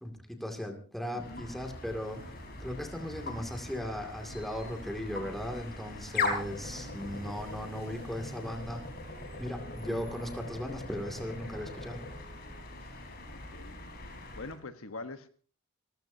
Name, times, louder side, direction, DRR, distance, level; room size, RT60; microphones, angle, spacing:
voice 1, 0.0-8.8 9.4-12.0, equal, ahead, 3 dB, 2.5 m, -37 dB
voice 2, 1.1-1.5 9.7-10.0 13.3-13.8 14.4-15.3, left 3 dB, 75° left, 9 dB, 1.2 m, -44 dB
Motorcycle, 1.1-13.8, right 1 dB, 45° right, 3.8 m, -52 dB
sound 1, 1.2-14.6, left 3 dB, 45° left, 4.3 m, -40 dB
Wind instrument woodwind instrument, 7.6-12.8, right 3 dB, 25° right, 7.3 m, -56 dB
29.5 x 14.5 x 2.8 m, 0.38 s
head